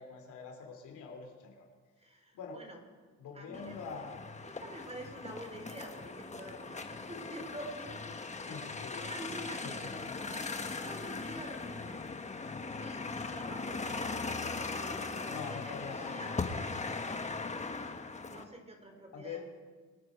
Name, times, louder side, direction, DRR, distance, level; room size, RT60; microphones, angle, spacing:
voice 1, 0.0-1.6 2.3-2.6 3.2-4.2 8.5-9.1 9.6-10.1 15.3-16.2 19.1-19.4, left 5 dB, 80° left, 3 dB, 2.9 m, -44 dB
voice 2, 2.0-2.8 3.3-4.1 4.4-8.2 8.9-10.5 10.8-12.0 12.8-16.6 18.2-19.5, right 1 dB, 20° right, 4 dB, 3.3 m, -47 dB
sound 1, 3.5-18.4, left 4 dB, 25° left, 1.2 m, -39 dB
23.5 x 9.3 x 5.0 m, 1.4 s
cardioid pair, 90°, 30 cm